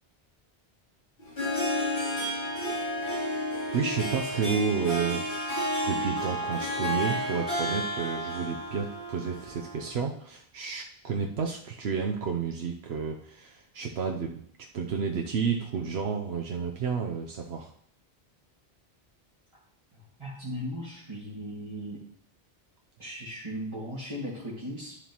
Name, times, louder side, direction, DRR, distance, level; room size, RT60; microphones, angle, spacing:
Harp, 1.2-9.9, equal, 60° left, 3.2 m, -31 dB
voice 1, 3.7-5.3 5.9-14.4 14.7-17.7, right 6 dB, 80° right, 1 dB, 1.0 m, -31 dB
voice 2, 20.2-22.0 23.0-25.0, equal, 30° right, -8 dB, 2.0 m, -37 dB
11.5 x 7.1 x 3.0 m, 0.65 s
omnidirectional pair, 1.1 m